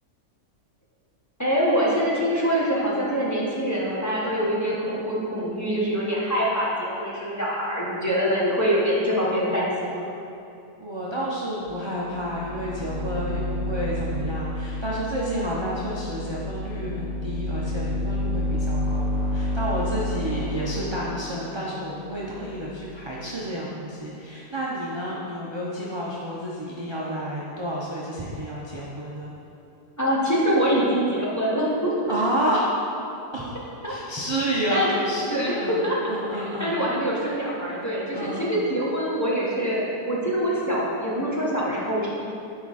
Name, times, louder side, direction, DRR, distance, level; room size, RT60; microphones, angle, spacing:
voice 1, 1.4-10.0 30.0-31.9 33.8-33.9 34.7-34.9 35.3-35.5 35.8-42.1, equal, 10° left, -7 dB, 1.1 m, -24 dB
voice 2, 10.8-29.3 32.1-32.7 33.3-33.6 33.8-35.8 36.1-36.7 38.1-38.5, right 1 dB, 35° right, -7 dB, 0.4 m, -30 dB
sound 1, 11.6-11.7 12.0-23.1, equal, 40° left, 2.1 m, -30 dB
8.8 x 5.0 x 4.2 m, 2.7 s
omnidirectional pair, 1.7 m